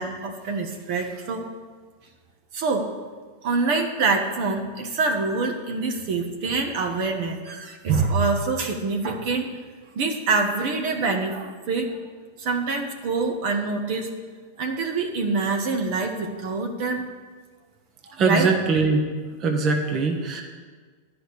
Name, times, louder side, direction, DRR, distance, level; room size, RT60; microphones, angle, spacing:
voice 1, 0.0-1.5 2.5-2.9 3.4-9.5 9.9-11.9 12.4-14.1 14.6-17.0 18.1-18.5, right 4 dB, 55° right, 3 dB, 1.3 m, -25 dB
voice 2, 18.2-19.0 19.4-20.4, right 4 dB, 35° right, 3 dB, 1.3 m, -21 dB
11.0 x 5.0 x 8.4 m, 1.5 s
hypercardioid pair, 120°, 0 cm